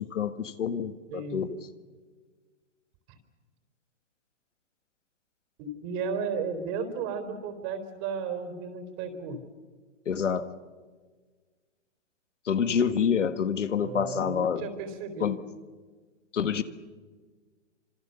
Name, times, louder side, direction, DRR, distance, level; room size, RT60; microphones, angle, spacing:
voice 1, 0.0-1.6 10.1-10.5 12.5-14.7 15.2-15.4 16.3-16.6, left 7 dB, 80° left, 12 dB, 1.8 m, -27 dB
voice 2, 1.1-1.4 5.6-9.4 13.8-15.4, right 5 dB, 35° right, 8 dB, 4.2 m, -34 dB
26.5 x 26.0 x 7.0 m, 1.4 s
hypercardioid pair, 135°, 36 cm